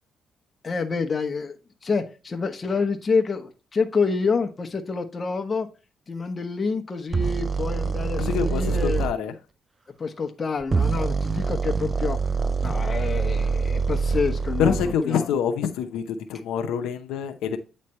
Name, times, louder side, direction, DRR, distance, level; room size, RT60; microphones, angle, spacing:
voice 1, 0.6-5.7 6.1-9.0 10.0-12.2 12.6-14.8 15.0-15.3, left 4 dB, 35° left, 1.0 m, -27 dB
sound 1, 7.1-9.1 10.6-15.0, right 5 dB, 30° right, 0.4 m, -25 dB
voice 2, 8.2-9.3 14.6-17.6, left 7 dB, 90° left, 0.7 m, -26 dB
8.7 x 3.3 x 4.3 m
cardioid pair, 90°, 0 cm